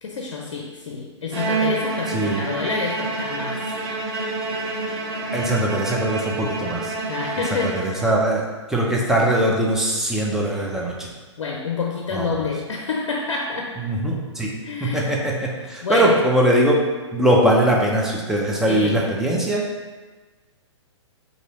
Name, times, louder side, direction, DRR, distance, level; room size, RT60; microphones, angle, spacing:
voice 1, 0.0-3.7 7.0-8.1 11.4-13.8 14.6-15.1 15.6-16.2 18.7-19.0, left 4 dB, 80° left, 0 dB, 0.5 m, -28 dB
Bowed string instrument, 1.3-8.3, right 3 dB, 55° right, 0.7 m, -28 dB
voice 2, 2.1-2.5 5.3-6.9 7.5-11.1 12.1-12.3 13.8-14.5 14.8-16.8 17.1-19.6, right 1 dB, 5° right, -3 dB, 0.5 m, -21 dB
2.9 x 2.7 x 4.1 m, 1.3 s
hypercardioid pair, 130°, 15 cm